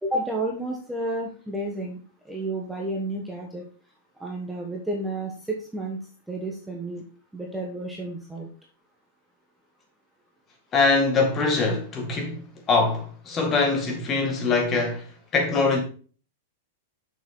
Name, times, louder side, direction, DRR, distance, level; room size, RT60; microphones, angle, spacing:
voice 1, 0.0-2.0 2.2-3.6 4.2-6.0 6.3-7.0 7.3-8.5, right 1 dB, 5° right, 1.2 m, -31 dB
voice 2, 10.7-15.8, left 3 dB, 25° left, 2.0 m, -23 dB
6.9 x 6.4 x 3.8 m
supercardioid pair, 150°, 0 cm